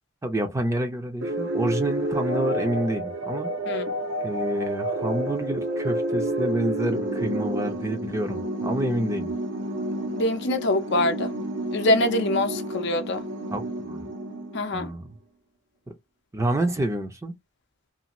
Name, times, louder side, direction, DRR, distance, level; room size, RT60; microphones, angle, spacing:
voice 1, 0.2-3.5 4.2-9.3 13.5-14.1 14.7-15.2 16.3-17.3, right 1 dB, 15° right, 0.5 m, -28 dB
sound 1, 1.2-14.9, right 1 dB, 60° right, 0.7 m, -30 dB
voice 2, 10.1-11.3 11.7-13.2 14.5-14.9, left 1 dB, 55° left, 0.6 m, -24 dB
2.6 x 2.4 x 2.9 m
head